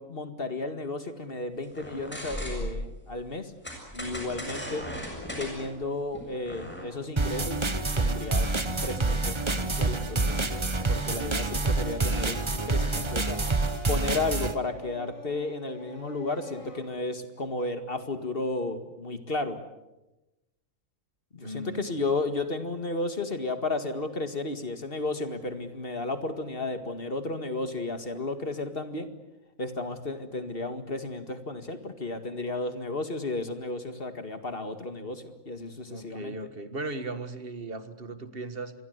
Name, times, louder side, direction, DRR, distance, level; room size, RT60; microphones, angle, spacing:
voice 1, 0.0-3.5 3.9-4.9 5.4-7.7 7.9-10.5 10.9-13.4 13.9-19.6 21.3-29.1 29.6-36.4, left 2 dB, 45° left, 8 dB, 2.2 m, -33 dB
sound 1, 1.7-2.9 3.6-6.8, equal, 10° left, 7.2 m, -37 dB
Singing, 6.9-16.8, left 1 dB, 80° left, 7.0 m, -47 dB
sound 2, 7.2-14.5, right 3 dB, 25° right, 1.1 m, -27 dB
voice 2, 21.4-21.9 35.9-38.7, right 2 dB, 45° right, 11 dB, 1.8 m, -37 dB
27.5 x 22.5 x 8.1 m, 0.99 s
omnidirectional pair, 1.4 m